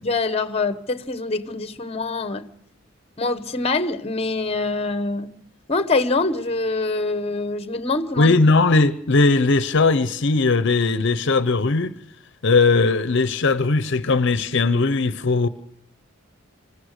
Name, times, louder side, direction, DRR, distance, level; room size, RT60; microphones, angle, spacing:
voice 1, 0.0-2.5 3.2-5.3 5.7-8.3, left 3 dB, 30° left, 1.0 m, -24 dB
voice 2, 8.2-11.9 12.4-15.5, left 3 dB, 65° left, 0.8 m, -18 dB
26.0 x 16.0 x 6.6 m
head